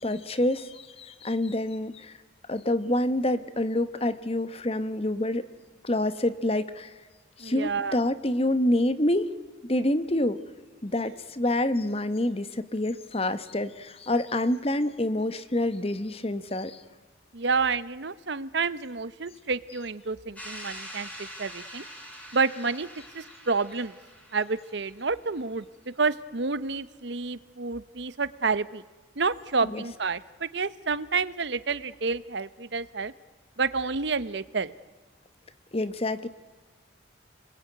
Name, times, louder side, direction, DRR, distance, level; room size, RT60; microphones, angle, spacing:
voice 1, 0.0-2.2 2.5-5.5 5.8-6.9 7.4-9.3 9.6-10.4 10.8-16.8 29.6-29.8 35.7-36.3, left 1 dB, 30° left, 13 dB, 1.1 m, -27 dB
voice 2, 7.4-8.0 11.0-11.1 17.3-21.8 22.3-22.9 23.1-24.0 24.3-25.6 26.0-28.8 29.2-33.1 33.6-34.7, right 4 dB, 65° right, 16 dB, 0.9 m, -29 dB
sound 1, 20.3-25.2, equal, 5° left, 4.1 m, -44 dB
29.5 x 21.5 x 9.4 m, 1.4 s
head